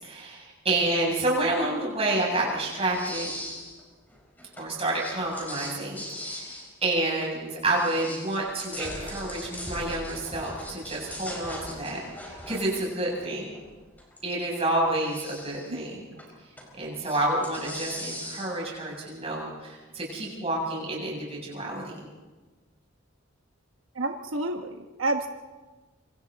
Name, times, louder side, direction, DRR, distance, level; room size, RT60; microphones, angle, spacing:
voice 1, 0.0-3.3 4.6-12.0 12.3-13.5 14.2-16.0 16.8-22.1, right 2 dB, 30° right, -3 dB, 7.8 m, -29 dB
sound 1, 2.8-7.4 7.7-14.2 14.7-15.8 16.2-16.7 17.0-18.8, left 1 dB, 10° left, 5.2 m, -40 dB
voice 2, 15.7-16.2 23.9-25.3, right 2 dB, 85° right, 4 dB, 1.3 m, -30 dB
26.5 x 26.5 x 4.1 m, 1.3 s
head